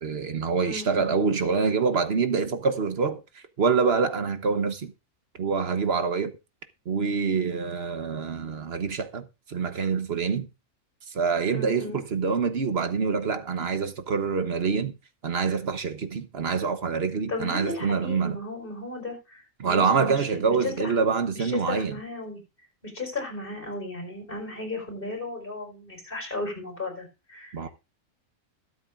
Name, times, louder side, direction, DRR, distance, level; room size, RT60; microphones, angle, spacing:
voice 1, 0.0-4.9 5.4-6.3 6.9-10.5 11.1-14.9 15.2-18.4 19.6-21.9 27.5-27.7, right 5 dB, 50° right, 1.2 m, -26 dB
voice 2, 0.6-1.1 11.5-12.0 17.3-21.1 21.3-22.4 22.8-27.7, left 2 dB, 40° left, 4.8 m, -35 dB
22.0 x 7.9 x 2.5 m
omnidirectional pair, 1.4 m